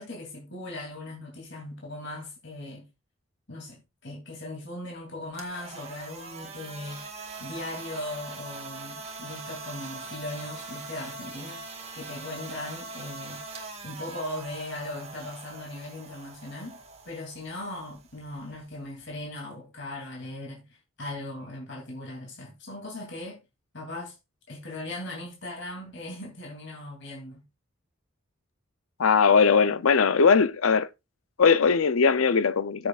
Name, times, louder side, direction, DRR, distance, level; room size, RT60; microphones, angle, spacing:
voice 1, 0.0-2.9 3.5-7.0 7.4-11.6 11.9-13.4 13.8-20.6 21.0-23.4 23.7-24.1 24.5-27.4, left 1 dB, 60° left, 3.0 m, -38 dB
sound 1, 5.2-19.3, right 3 dB, 30° right, 1.9 m, -42 dB
voice 2, 29.0-30.9 31.4-32.9, left 5 dB, 85° left, 0.6 m, -20 dB
13.5 x 7.8 x 2.5 m
head